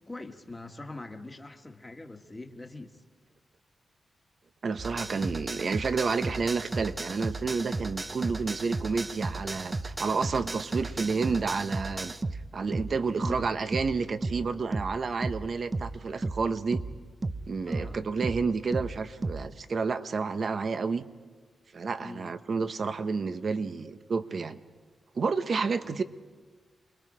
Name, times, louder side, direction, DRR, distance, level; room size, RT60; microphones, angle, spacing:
voice 1, 0.0-3.0 13.2-13.4 17.7-18.0 22.0-22.3 25.8-26.0, left 2 dB, 15° left, 5 dB, 1.5 m, -43 dB
voice 2, 4.6-12.1 12.5-16.8 17.5-21.0 21.7-24.6 25.1-26.0, right 4 dB, 50° right, 11 dB, 0.9 m, -30 dB
sound 1, 4.8-19.5, right 2 dB, 25° right, 0.6 m, -34 dB
28.0 x 21.0 x 5.0 m, 1.4 s
wide cardioid pair, 110°, 0 cm